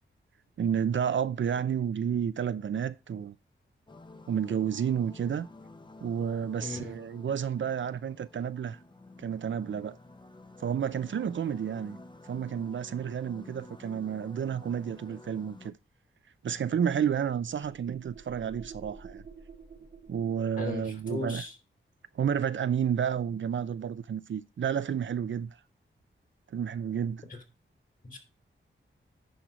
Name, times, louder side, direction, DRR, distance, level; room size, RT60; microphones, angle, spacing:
voice 1, 0.6-3.3 4.3-5.5 6.0-8.8 9.2-10.0 10.6-12.0 12.2-15.7 16.4-19.2 20.1-21.4 22.1-25.6 26.5-27.2, right 8 dB, 65° right, 0.5 m, -31 dB
sound 1, 3.9-15.7, left 2 dB, 20° left, 0.9 m, -51 dB
voice 2, 6.6-6.9 20.6-21.5 27.3-27.4 28.0-28.2, left 2 dB, 40° left, 2.8 m, -37 dB
sound 2, 16.6-21.5, right 5 dB, 35° right, 0.9 m, -50 dB
10.5 x 4.5 x 5.0 m
wide cardioid pair, 100°, 21 cm